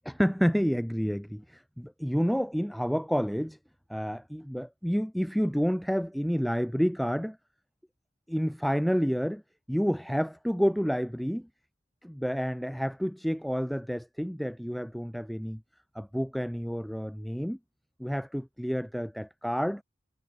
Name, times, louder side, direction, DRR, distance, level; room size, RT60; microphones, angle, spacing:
voice 1, 0.1-3.6 3.9-7.4 8.3-9.4 9.7-11.5 12.0-15.6 16.0-17.6 18.0-19.8, equal, ahead, 0.4 m, -29 dB
head